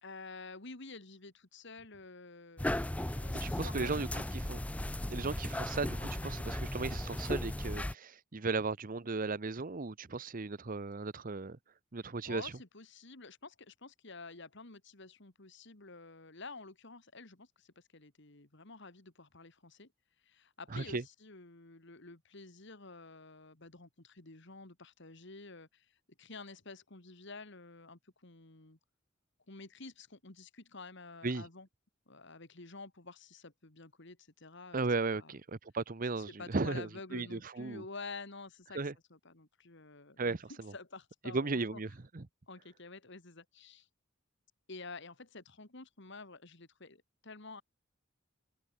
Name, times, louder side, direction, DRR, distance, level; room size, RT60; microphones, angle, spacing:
voice 1, 0.0-4.3 12.3-19.9 20.2-25.9 26.2-28.8 29.5-31.7 32.1-34.9 35.1-35.3 36.1-38.8 39.1-41.8 42.5-43.9 44.7-47.6, left 3 dB, 60° left, 2.5 m, -50 dB
sound 1, 2.6-7.9, left 1 dB, 5° left, 0.4 m, -36 dB
voice 2, 3.4-4.1 4.5-4.6 5.1-11.6 11.9-12.5 20.7-21.0 31.2-31.4 34.7-37.8 38.7-38.9 40.2-40.7 41.3-42.2, right 3 dB, 40° right, 0.8 m, -36 dB
head